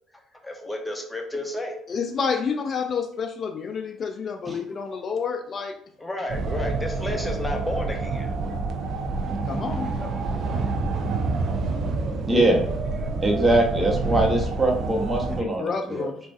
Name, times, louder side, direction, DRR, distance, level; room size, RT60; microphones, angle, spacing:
voice 1, 0.4-1.8 6.0-8.3 10.0-10.2, left 1 dB, 15° left, 3 dB, 0.8 m, -32 dB
voice 2, 1.9-5.8 9.5-9.9 15.3-16.2, left 6 dB, 50° left, 5 dB, 0.3 m, -29 dB
sound 1, 6.3-15.4, right 3 dB, 60° right, 0.5 m, -28 dB
voice 3, 12.3-12.6 13.2-16.1, right 1 dB, 20° right, 0 dB, 0.9 m, -22 dB
3.7 x 2.4 x 2.4 m, 0.65 s
hypercardioid pair, 60°, 0 cm